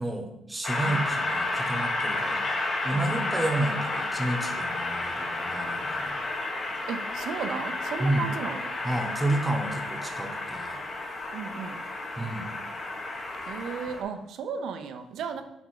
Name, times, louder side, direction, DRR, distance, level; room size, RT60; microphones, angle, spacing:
voice 1, 0.0-2.5 2.8-6.2 8.0-8.3 8.8-10.8 12.2-12.5, right 1 dB, 15° right, 4 dB, 1.1 m, -30 dB
Train, 0.6-14.0, left 2 dB, 35° left, 1.4 m, -31 dB
voice 2, 2.9-3.3 6.9-8.8 11.3-11.8 13.5-15.4, right 6 dB, 75° right, 7 dB, 0.7 m, -35 dB
7.9 x 3.6 x 4.9 m, 0.86 s
cardioid pair, 90°, 0 cm